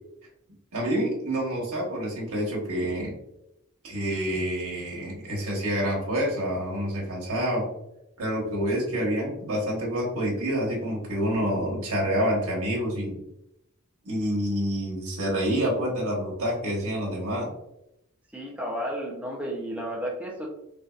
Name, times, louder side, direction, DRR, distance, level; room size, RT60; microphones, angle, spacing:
voice 1, 0.7-3.1 3.8-7.7 8.2-13.2 14.0-17.5, equal, 85° right, -3 dB, 1.2 m, -27 dB
voice 2, 18.3-20.5, equal, 5° right, -2 dB, 0.6 m, -32 dB
3.6 x 2.7 x 2.3 m, 0.83 s
head